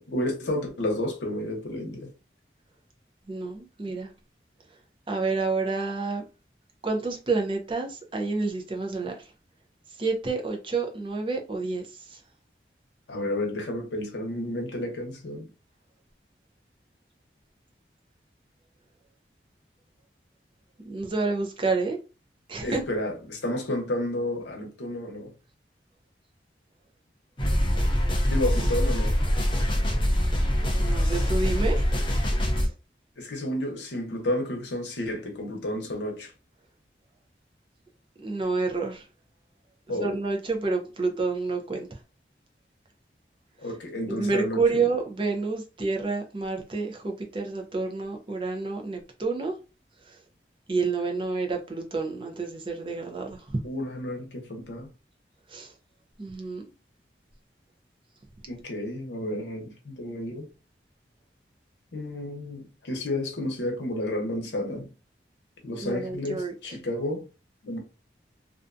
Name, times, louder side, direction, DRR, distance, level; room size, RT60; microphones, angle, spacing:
voice 1, 0.0-2.1 13.1-15.5 22.6-25.3 28.3-29.2 33.2-36.3 39.9-40.2 43.6-44.8 53.6-54.9 58.5-60.5 61.9-64.9 65.6-67.2 67.6-67.8, left 1 dB, 85° left, 0.8 m, -31 dB
voice 2, 3.3-4.1 5.1-6.2 6.8-9.1 10.0-12.2 20.8-22.0 22.5-22.8 30.8-31.8 32.6-32.7 38.2-39.1 40.0-41.9 44.1-49.5 50.1-50.2 50.7-53.6 55.5-55.7 56.2-56.7 65.8-66.8, right 3 dB, 30° right, 0.5 m, -29 dB
sound 1, 27.4-32.7, equal, 30° left, 0.6 m, -24 dB
2.5 x 2.2 x 2.5 m
head